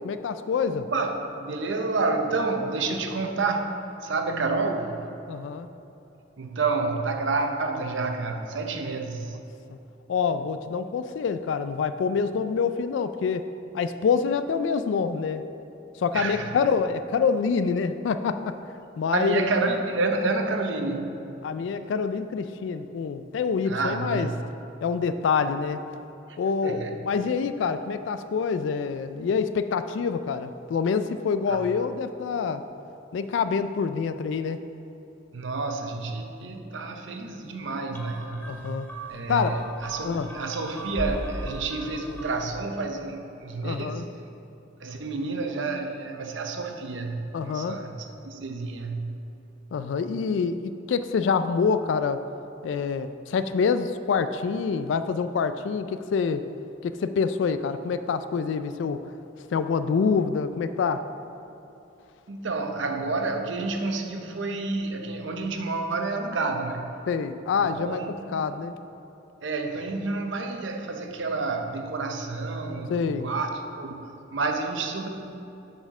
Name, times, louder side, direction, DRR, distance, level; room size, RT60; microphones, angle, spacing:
voice 1, 0.0-0.9 5.3-5.7 10.1-13.5 13.7-15.5 16.0-18.6 19.0-19.4 21.4-24.3 24.8-25.8 26.4-32.6 33.1-34.6 38.5-38.9 39.3-39.6 40.0-40.3 43.6-44.1 47.3-47.8 49.7-52.2 52.6-56.4 56.8-59.0 59.5-61.0 67.1-68.7 72.9-73.3, left 5 dB, 70° left, 11 dB, 0.3 m, -26 dB
voice 2, 0.7-5.1 6.4-9.4 16.1-16.7 19.1-21.1 23.7-24.4 26.6-27.0 31.5-31.7 35.3-38.8 39.1-44.0 44.8-49.2 62.3-66.9 67.5-68.4 69.4-75.1, right 3 dB, 70° right, 4 dB, 0.7 m, -29 dB
sound 1, 37.9-42.7, right 1 dB, 10° left, 0.8 m, -38 dB
7.8 x 4.3 x 6.0 m, 2.9 s
head